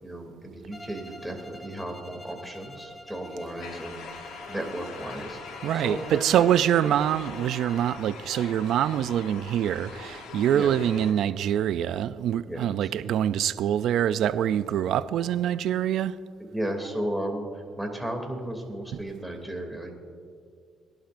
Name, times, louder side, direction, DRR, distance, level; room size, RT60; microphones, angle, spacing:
voice 1, 0.0-4.1 4.5-5.4 5.7-6.5 6.8-7.0 10.5-10.8 12.4-12.9 16.4-19.9, right 1 dB, ahead, 2.7 m, -34 dB
Bowed string instrument, 0.7-8.2, left 1 dB, 15° left, 1.8 m, -47 dB
sound 1, 3.6-11.1, left 5 dB, 85° left, 1.1 m, -42 dB
voice 2, 5.6-16.1, right 10 dB, 75° right, 0.4 m, -25 dB
20.5 x 11.5 x 2.6 m
cardioid pair, 80°, 0 cm